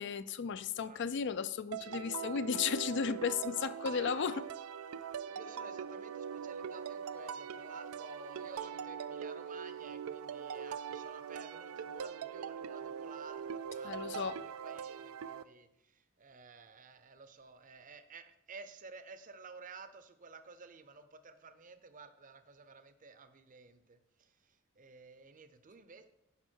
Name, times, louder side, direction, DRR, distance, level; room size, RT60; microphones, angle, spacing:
voice 1, 0.0-4.4 13.8-14.4, left 6 dB, 55° left, 0.4 m, -34 dB
sound 1, 1.7-15.4, right 7 dB, 80° right, 0.4 m, -42 dB
voice 2, 3.2-4.4 5.3-26.1, right 4 dB, 40° right, 0.7 m, -53 dB
11.0 x 5.4 x 4.5 m
head